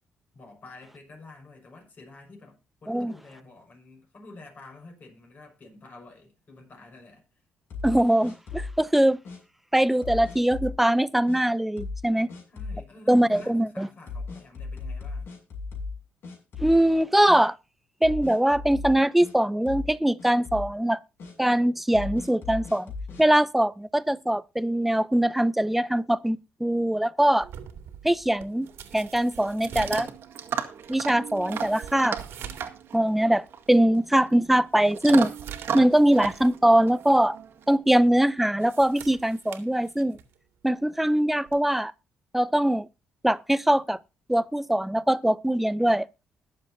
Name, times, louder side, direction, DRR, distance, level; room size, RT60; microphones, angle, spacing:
voice 1, 0.3-7.2 12.5-15.3, left 2 dB, 40° left, 6.2 m, -49 dB
sound 1, 7.7-8.8 9.2-9.4 10.0-10.8 11.3-11.4 11.8-12.0 12.3-12.8 13.3-13.5 14.1-16.0 16.2-17.0 17.3-17.4 18.0-19.3 19.7-19.9 20.2-20.7 21.2-21.3 21.9-23.2, left 4 dB, 65° left, 6.7 m, -36 dB
voice 2, 7.8-9.2 9.7-12.3 13.1-13.9 16.6-17.6 18.0-21.0 21.4-22.9 23.2-27.5 28.0-28.7 28.9-30.1 30.9-32.2 32.9-35.3 35.7-37.4 37.7-40.2 40.6-41.9 42.3-42.9 43.2-44.0 44.3-46.1, right 1 dB, 5° right, 0.6 m, -22 dB
sound 2, 27.4-32.8 33.1-33.2 33.8-33.9 34.3-36.6 36.9-37.2 38.4-40.4 41.5-41.7, right 9 dB, 80° right, 2.3 m, -44 dB
Chewing mastication / Dog, 28.6-37.8, right 7 dB, 65° right, 1.8 m, -36 dB
21.0 x 7.3 x 2.8 m
cardioid pair, 100°, 4 cm